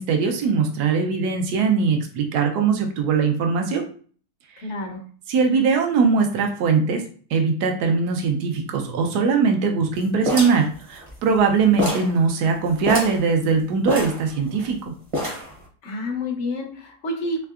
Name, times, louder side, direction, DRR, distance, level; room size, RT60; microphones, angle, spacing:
voice 1, 0.0-3.9 4.5-4.7 5.3-7.0 7.3-14.9, right 5 dB, 80° right, 3 dB, 1.2 m, -21 dB
voice 2, 4.6-5.0 15.8-17.4, left 2 dB, 60° left, 3 dB, 0.9 m, -29 dB
sound 1, 10.3-11.5 11.8-12.2 12.5-12.6 12.8-13.2 13.9-14.7 15.1-15.6, equal, 30° right, 0.7 m, -26 dB
3.7 x 3.2 x 2.4 m, 0.44 s
omnidirectional pair, 1.7 m